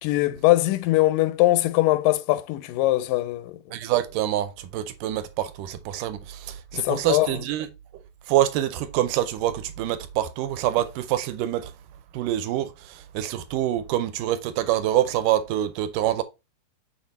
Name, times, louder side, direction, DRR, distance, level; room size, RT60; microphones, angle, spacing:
voice 1, 0.0-3.6 6.7-7.4, left 17 dB, 85° left, 2.2 m, -21 dB
voice 2, 3.7-7.7 8.3-11.7 12.1-16.2, right 13 dB, 80° right, 2.1 m, -26 dB
6.5 x 3.8 x 4.0 m
omnidirectional pair, 3.9 m